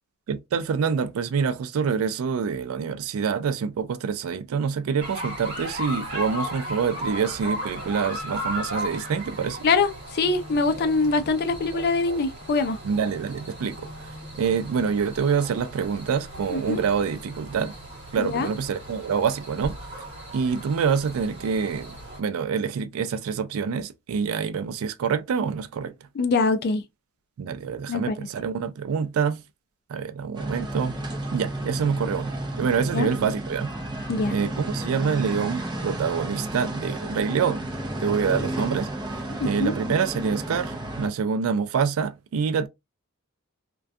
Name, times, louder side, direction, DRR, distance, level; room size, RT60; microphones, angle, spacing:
voice 1, 0.3-9.6 12.8-13.8 14.4-17.7 18.1-19.8 20.3-25.9 27.4-29.4 29.9-31.0 31.3-32.3 32.6-33.7 34.3-37.7 38.0-42.7, right 6 dB, 75° right, 0.3 m, -26 dB
sound 1, 5.0-22.2, equal, 55° right, 1.3 m, -36 dB
voice 2, 9.6-12.8 16.5-16.8 18.2-18.5 26.2-26.8 27.9-28.3 32.9-33.1 34.1-34.3 39.4-39.7, left 3 dB, 50° left, 0.4 m, -24 dB
sound 2, 30.3-41.1, right 1 dB, 20° right, 0.6 m, -32 dB
2.4 x 2.2 x 2.5 m
head